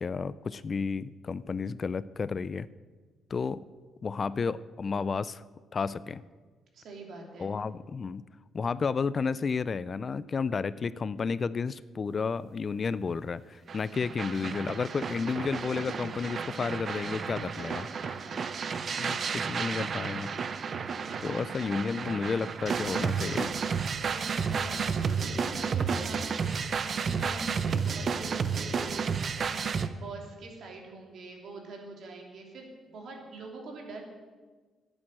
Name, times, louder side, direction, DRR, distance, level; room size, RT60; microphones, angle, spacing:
voice 1, 0.0-2.7 3.3-3.6 4.0-5.4 5.7-6.2 7.4-8.2 8.5-17.9 19.0-20.3 21.2-23.5, left 5 dB, 40° left, 18 dB, 0.4 m, -32 dB
voice 2, 6.7-7.5 17.6-18.4 24.0-26.5 26.9-29.5 29.9-34.0, right 3 dB, 65° right, 1 dB, 2.9 m, -44 dB
sound 1, 13.7-29.9, right 6 dB, 50° right, 0.6 m, -32 dB
11.0 x 8.8 x 7.4 m, 1.4 s
cardioid pair, 90°, 0 cm